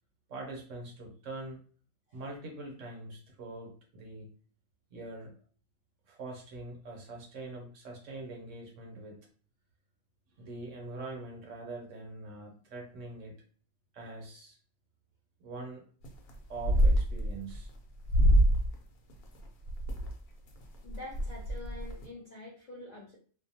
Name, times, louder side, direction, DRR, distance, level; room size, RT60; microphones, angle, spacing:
voice 1, 0.3-1.6 2.1-4.3 4.9-5.3 6.1-9.2 10.4-13.3 13.9-14.6 15.4-15.8 16.5-17.7, right 2 dB, 65° right, 0 dB, 1.0 m, -43 dB
sound 1, 16.0-16.3 16.6-17.7 18.1-18.7 19.1-20.1 20.6-20.7 20.9-22.0, right 1 dB, 85° left, 1.1 m, -25 dB
voice 2, 20.8-23.2, left 2 dB, 45° left, -6 dB, 0.5 m, -46 dB
2.6 x 2.2 x 2.7 m, 0.43 s
omnidirectional pair, 1.5 m